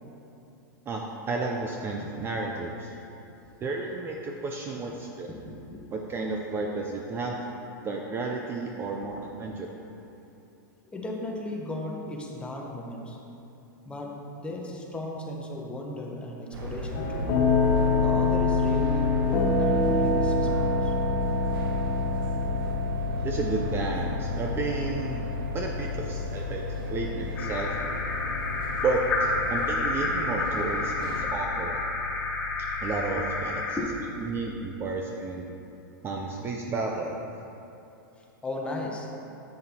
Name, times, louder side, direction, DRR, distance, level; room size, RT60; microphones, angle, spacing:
voice 1, 0.9-2.9 3.6-5.3 5.9-7.4 7.8-9.7 23.2-25.3 25.5-26.6 26.9-27.8 28.8-31.8 32.8-33.8 34.2-35.5 36.0-37.2, right 3 dB, 20° right, 0 dB, 0.5 m, -32 dB
voice 2, 5.3-5.9 10.9-13.2 13.9-17.4 18.0-20.9 33.8-34.1 38.4-39.1, left 1 dB, 10° left, 0 dB, 0.8 m, -36 dB
sound 1, 16.5-31.2, right 1 dB, 80° right, 1.4 m, -38 dB
sound 2, 16.9-33.4, left 3 dB, 45° left, 1.3 m, -28 dB
sound 3, 27.4-33.8, left 2 dB, 85° left, 1.5 m, -30 dB
9.0 x 7.9 x 2.9 m, 2.8 s
hypercardioid pair, 140°, 12 cm